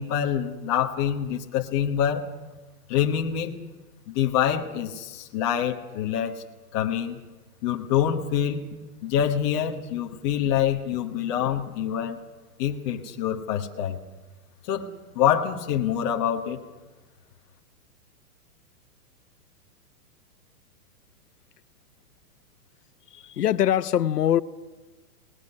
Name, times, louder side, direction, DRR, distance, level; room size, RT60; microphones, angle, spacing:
voice 1, 0.0-2.3 2.9-3.5 4.1-6.4 6.7-7.2 7.6-8.7 9.0-12.2 12.6-14.0 14.7-14.9 15.1-16.6, left 9 dB, 15° left, 1.0 m, -26 dB
voice 2, 23.1-24.4, left 11 dB, 80° left, 1.0 m, -23 dB
23.5 x 19.0 x 9.7 m
hypercardioid pair, 175°, 46 cm